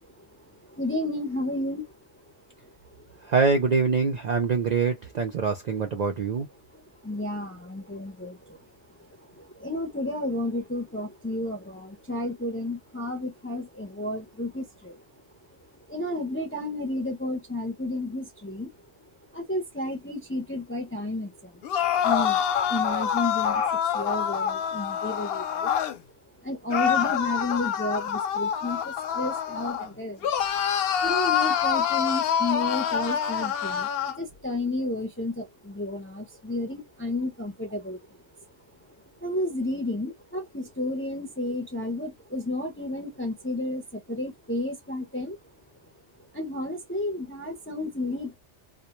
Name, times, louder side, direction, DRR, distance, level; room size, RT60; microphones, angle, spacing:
voice 1, 0.0-2.3 3.0-3.1 6.7-15.0 15.9-18.7 19.3-21.6 22.0-25.8 26.4-30.3 30.8-38.2 39.2-45.4 46.3-48.3, left 2 dB, 20° left, 0.3 m, -32 dB
voice 2, 3.2-6.5, right 5 dB, 60° right, 0.4 m, -24 dB
sound 1, 21.6-26.0 26.7-29.9 30.2-34.2, left 8 dB, 65° left, 0.7 m, -26 dB
2.2 x 2.1 x 2.8 m
omnidirectional pair, 1.2 m